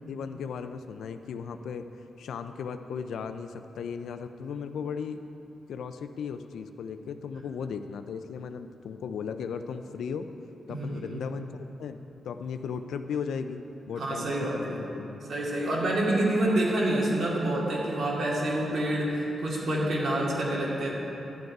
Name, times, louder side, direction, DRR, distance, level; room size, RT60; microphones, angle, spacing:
voice 1, 0.1-1.9 2.2-5.2 5.7-10.3 10.7-11.5 11.8-15.2, left 6 dB, 90° left, 9 dB, 0.4 m, -36 dB
voice 2, 10.7-11.2 14.0-14.7 15.3-20.9, right 1 dB, 70° right, -4 dB, 2.3 m, -27 dB
12.0 x 7.9 x 4.7 m, 3.0 s
cardioid pair, 95°, 0 cm